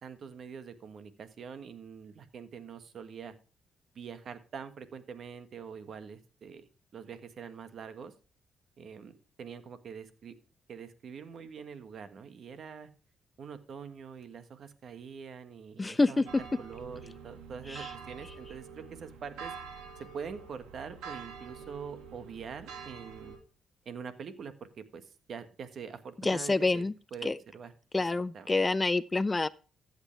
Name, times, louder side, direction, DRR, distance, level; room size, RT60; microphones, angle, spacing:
voice 1, 0.0-3.3 3.9-6.7 6.9-8.1 8.8-10.3 10.7-12.9 13.4-19.5 20.0-23.3 23.8-27.7 28.1-28.7, right 6 dB, 55° right, 1.6 m, -44 dB
voice 2, 15.8-16.2 17.7-17.9 26.2-26.9 27.2-27.4 27.9-29.5, left 3 dB, 20° left, 0.5 m, -27 dB
sound 1, 16.3-23.4, right 6 dB, 90° right, 2.1 m, -46 dB
14.5 x 8.2 x 3.3 m
cardioid pair, 90°, 0 cm